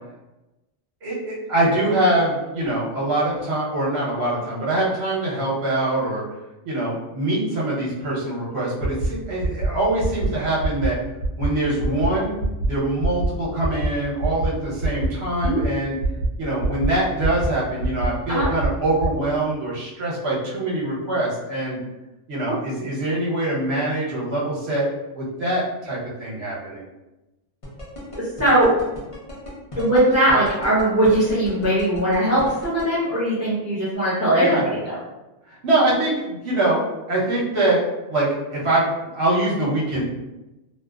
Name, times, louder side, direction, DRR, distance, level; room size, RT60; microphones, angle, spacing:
voice 1, 1.0-6.2 6.6-11.0 11.4-12.3 12.7-15.9 16.4-21.8 22.3-24.9 25.1-26.8 34.3-34.6 35.5-37.8 38.1-40.0, right 1 dB, 60° right, -6 dB, 1.1 m, -23 dB
sound 1, 8.8-9.1 9.4-9.7 10.0-10.3 10.6-10.9 11.2-11.5 11.8-12.1 12.4-12.7 13.0-13.3 13.6-13.9 14.2-14.5 14.8-15.1 15.4-15.7 16.0-16.3 16.6-16.9 17.2-17.5 17.8-18.1 18.4-18.7 19.0-19.1, right 2 dB, 75° left, 1.1 m, -23 dB
sound 2, 27.6-32.8, left 1 dB, 35° left, 0.6 m, -35 dB
voice 2, 28.1-28.7 29.7-35.0, right 1 dB, 15° right, -9 dB, 0.7 m, -20 dB
2.8 x 2.0 x 2.3 m, 1.0 s
omnidirectional pair, 1.3 m